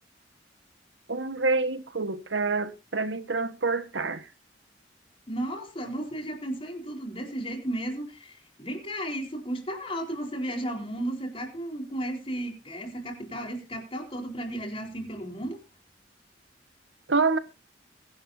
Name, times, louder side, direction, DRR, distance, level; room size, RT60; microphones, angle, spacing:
voice 1, 1.1-4.3 17.1-17.4, right 3 dB, 85° right, 1.4 m, -27 dB
voice 2, 5.3-15.6, right 1 dB, 30° left, 4.2 m, -34 dB
23.0 x 11.5 x 2.7 m
head